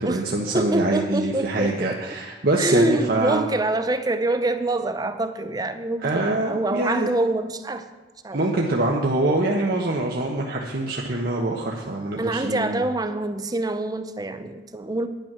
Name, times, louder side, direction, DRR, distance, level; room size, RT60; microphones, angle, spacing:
voice 1, 0.0-3.5 6.0-7.1 8.3-12.8, right 2 dB, 55° right, -1 dB, 1.1 m, -24 dB
voice 2, 0.5-2.2 2.6-7.8 8.2-8.4 12.2-15.1, right 2 dB, 20° right, 10 dB, 0.6 m, -25 dB
10.5 x 9.1 x 6.1 m, 1.2 s
head